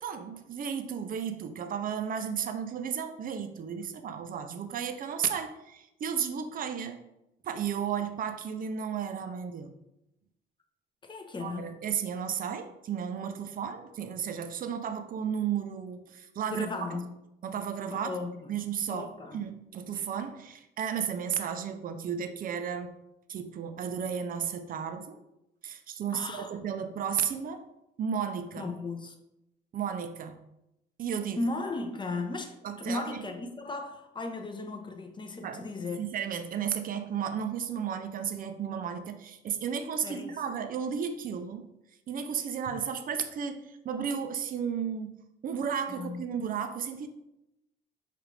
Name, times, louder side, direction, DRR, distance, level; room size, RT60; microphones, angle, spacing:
voice 1, 0.0-7.0 7.4-9.7 11.4-16.7 17.4-18.2 18.5-23.0 23.3-25.2 25.6-27.6 28.0-28.7 29.7-30.4 31.0-31.4 32.6-33.2 35.4-35.6 36.0-41.7 42.1-45.2 45.4-47.1, right 7 dB, 45° right, 0.4 m, -33 dB
voice 2, 11.0-11.7 16.5-17.1 17.9-18.5 18.9-19.4 26.1-26.5 28.5-29.1 31.4-36.0 40.0-40.4 45.9-46.2, left 3 dB, 25° left, 0.6 m, -36 dB
4.9 x 2.4 x 3.2 m
cardioid pair, 90°, 20 cm